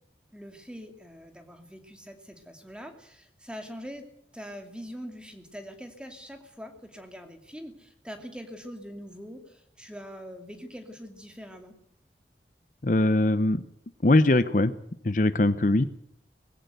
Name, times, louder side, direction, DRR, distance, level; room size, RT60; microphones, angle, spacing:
voice 1, 0.3-4.1 4.3-11.8, equal, 5° right, 5 dB, 2.6 m, -43 dB
voice 2, 12.8-13.6 14.0-14.7 15.0-15.8, left 2 dB, 45° left, 13 dB, 0.8 m, -21 dB
21.0 x 16.0 x 8.1 m, 0.71 s
head